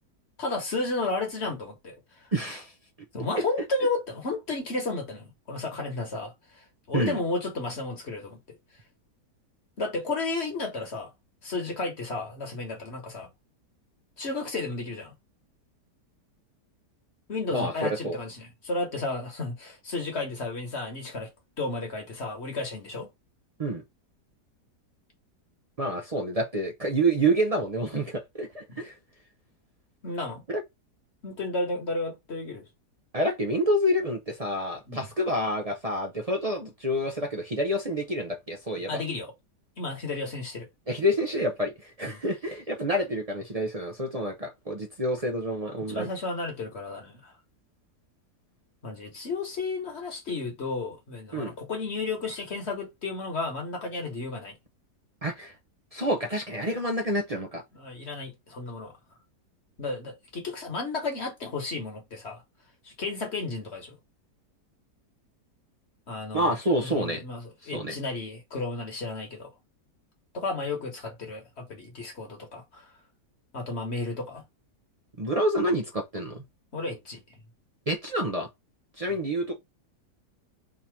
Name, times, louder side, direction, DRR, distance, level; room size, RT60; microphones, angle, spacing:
voice 1, 0.4-2.0 3.1-8.6 9.8-11.1 11.4-13.3 14.2-15.1 17.3-21.3 21.6-23.1 28.7-28.8 30.0-30.4 31.2-32.6 34.9-35.0 38.9-39.3 39.8-40.7 42.0-42.2 45.9-47.3 48.8-54.5 57.7-58.9 59.8-62.4 62.8-63.9 66.1-69.5 70.3-72.9 73.5-74.4 76.7-77.2 79.1-79.2, left 3 dB, 40° left, 1.4 m, -33 dB
voice 2, 2.3-2.7 3.3-3.4 6.9-7.2 17.5-17.7 18.0-18.2 23.6-23.8 25.8-28.9 30.5-30.6 33.1-39.0 40.9-46.1 51.3-51.5 55.2-55.5 55.9-57.6 66.3-67.2 67.6-67.9 75.2-76.4 77.9-78.5 79.0-79.6, right 1 dB, 45° right, 0.4 m, -28 dB
3.8 x 2.9 x 4.6 m
omnidirectional pair, 1.8 m